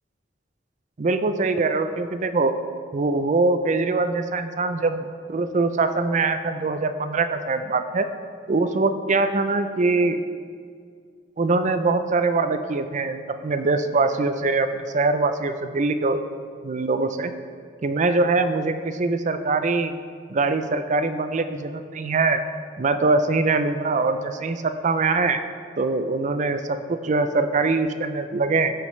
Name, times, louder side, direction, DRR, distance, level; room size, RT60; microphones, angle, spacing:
voice 1, 1.0-2.6 2.9-8.1 8.5-10.2 11.4-16.2 16.6-17.3 17.8-19.9 20.3-22.4 22.8-25.4 25.8-28.7, right 3 dB, 40° right, 9 dB, 0.4 m, -23 dB
13.5 x 5.1 x 3.2 m, 2.1 s
head